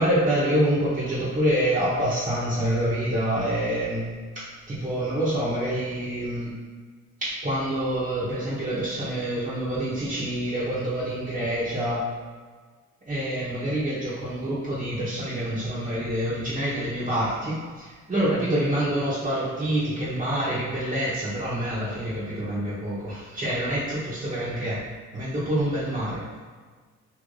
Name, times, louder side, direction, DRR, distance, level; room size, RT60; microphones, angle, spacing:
voice 1, 0.0-4.1 4.3-6.5 7.2-12.1 13.1-24.8 25.1-26.2, right 1 dB, 25° right, -11 dB, 1.0 m, -26 dB
3.2 x 3.0 x 2.6 m, 1.5 s
cardioid pair, 90°, 30 cm